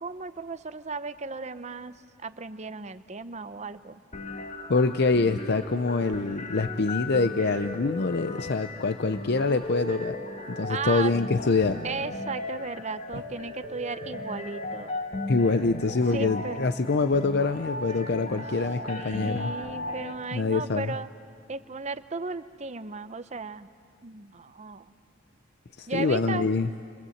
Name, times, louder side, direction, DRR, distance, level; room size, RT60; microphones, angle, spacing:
voice 1, 0.0-4.0 10.7-11.1 11.8-14.9 16.1-16.7 19.0-21.1 21.5-23.7 24.0-24.9 25.9-26.5, right 4 dB, 35° right, 12 dB, 0.7 m, -35 dB
sound 1, 4.1-20.1, left 2 dB, 40° left, 1.8 m, -36 dB
voice 2, 4.7-10.2 10.5-11.8 15.3-19.5 20.3-20.9 25.8-26.7, left 3 dB, 55° left, 9 dB, 0.6 m, -25 dB
29.0 x 24.0 x 8.0 m, 2.4 s
head